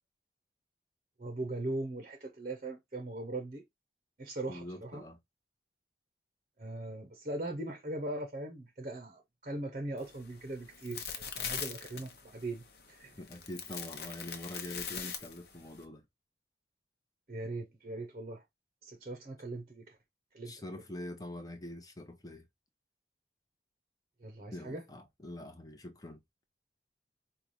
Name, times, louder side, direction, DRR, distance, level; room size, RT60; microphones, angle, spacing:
voice 1, 1.2-3.6 4.2-5.1 6.6-13.2 17.3-18.4 18.8-20.0 20.3-20.6 24.2-24.8, right 2 dB, 40° right, 0.7 m, -40 dB
voice 2, 4.5-5.2 13.2-16.0 20.5-22.4 24.5-26.2, left 1 dB, 20° left, 0.8 m, -44 dB
sound 1, 10.0-15.8, left 7 dB, 60° left, 0.9 m, -42 dB
5.4 x 2.3 x 3.1 m
head